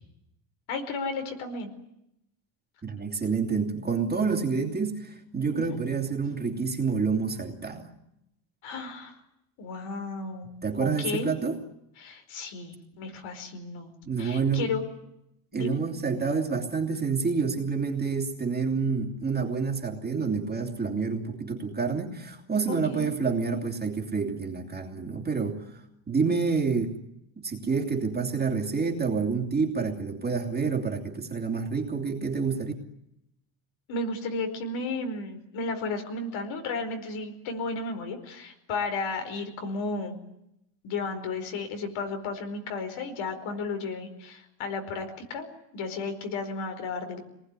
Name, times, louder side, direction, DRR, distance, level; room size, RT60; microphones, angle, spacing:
voice 1, 0.7-1.7 5.5-5.6 8.6-9.2 9.6-10.5 10.8-11.3 12.0-13.9 14.2-14.8 15.5-15.8 22.7-23.1 26.2-26.3 33.9-40.2 40.8-45.5 45.7-47.2, left 3 dB, 75° left, 6 dB, 4.9 m, -33 dB
voice 2, 2.8-7.9 10.6-11.6 14.0-14.7 15.5-25.6 26.1-27.0 27.4-32.7, right 5 dB, 20° right, 1 dB, 2.8 m, -28 dB
25.0 x 19.5 x 9.8 m, 0.83 s
cardioid pair, 165°, 48 cm